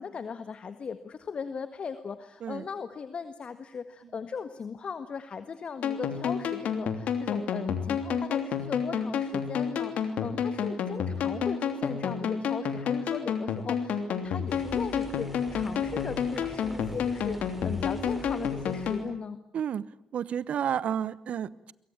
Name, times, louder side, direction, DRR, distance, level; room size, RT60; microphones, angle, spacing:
voice 1, 0.0-19.4, left 6 dB, 50° left, 11 dB, 1.6 m, -38 dB
sound 1, 5.8-19.1, left 7 dB, 70° left, 3.1 m, -30 dB
sound 2, 14.5-19.1, equal, 10° right, 5.1 m, -44 dB
voice 2, 19.5-19.9 20.1-21.7, right 9 dB, 65° right, 19 dB, 1.0 m, -31 dB
27.5 x 23.5 x 8.8 m, 0.78 s
hypercardioid pair, 45°, 2 cm